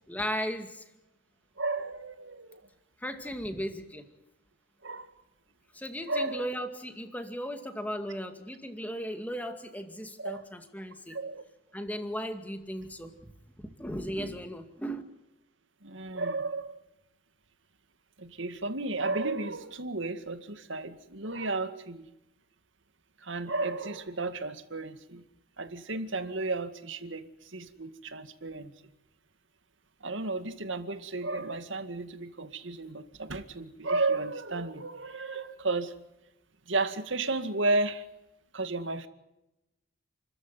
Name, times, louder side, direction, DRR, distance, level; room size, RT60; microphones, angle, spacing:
voice 1, 0.1-0.8 3.0-4.1 5.7-11.2 11.7-13.3 13.6-15.0, equal, 10° left, 6 dB, 2.2 m, -36 dB
voice 2, 1.6-2.6 4.8-5.1 6.1-6.5 10.2-10.4 11.1-11.4 15.8-16.8 18.2-22.1 23.2-25.2 25.6-28.7 30.0-35.9 36.7-38.1 38.5-39.1, right 2 dB, 70° right, 9 dB, 2.1 m, -33 dB
30.0 x 14.5 x 9.6 m, 0.92 s
head